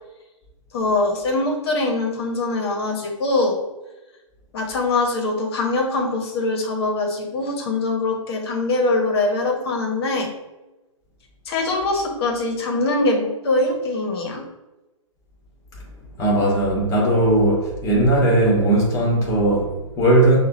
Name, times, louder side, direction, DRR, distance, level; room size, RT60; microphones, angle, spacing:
voice 1, 0.7-3.6 4.5-10.3 11.5-14.4, left 2 dB, 50° left, 1.1 m, -23 dB
voice 2, 16.2-20.4, right 1 dB, 20° left, 1.4 m, -18 dB
5.7 x 2.4 x 2.9 m
hypercardioid pair, 130°, 17 cm